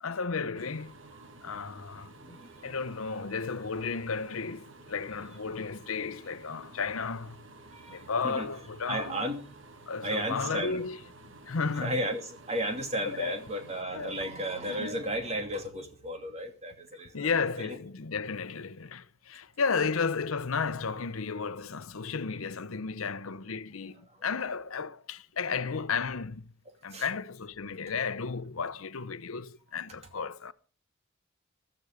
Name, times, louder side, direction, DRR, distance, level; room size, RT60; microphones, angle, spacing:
voice 1, 0.0-0.9 1.4-7.4 7.9-9.3 9.9-11.0 11.5-12.0 13.0-13.4 13.9-14.1 14.7-15.0 17.1-26.5 26.8-30.5, left 5 dB, 80° left, 0.8 m, -33 dB
sound 1, 0.5-13.8, right 2 dB, 65° right, 1.5 m, -52 dB
voice 2, 2.2-2.7 7.7-8.5 8.9-9.4 9.9-10.9 11.4-17.3 17.6-17.8 24.1-24.2 26.7-27.1, right 1 dB, 30° right, 2.5 m, -35 dB
13.5 x 13.5 x 4.9 m
head